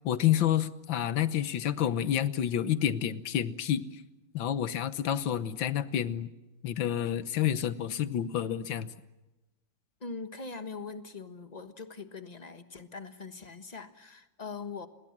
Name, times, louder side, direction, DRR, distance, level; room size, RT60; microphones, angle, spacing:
voice 1, 0.0-4.0 4.3-6.3 6.6-8.9, left 10 dB, 80° left, 13 dB, 1.8 m, -29 dB
voice 2, 10.0-14.9, left 4 dB, 25° left, 9 dB, 1.3 m, -42 dB
29.0 x 21.5 x 7.4 m, 1.0 s
omnidirectional pair, 2.1 m